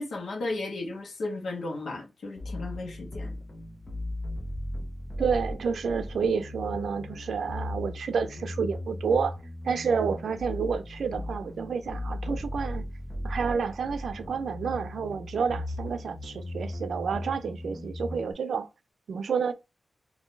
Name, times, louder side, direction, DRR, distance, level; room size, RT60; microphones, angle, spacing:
voice 1, 0.0-3.3, left 2 dB, 85° left, 1.0 m, -34 dB
sound 1, 2.4-18.3, left 1 dB, 30° left, 0.7 m, -37 dB
voice 2, 5.2-9.4 9.6-12.9 13.2-18.7 19.1-19.5, right 6 dB, 80° right, 0.4 m, -29 dB
2.7 x 2.6 x 3.6 m
wide cardioid pair, 175°, 0 cm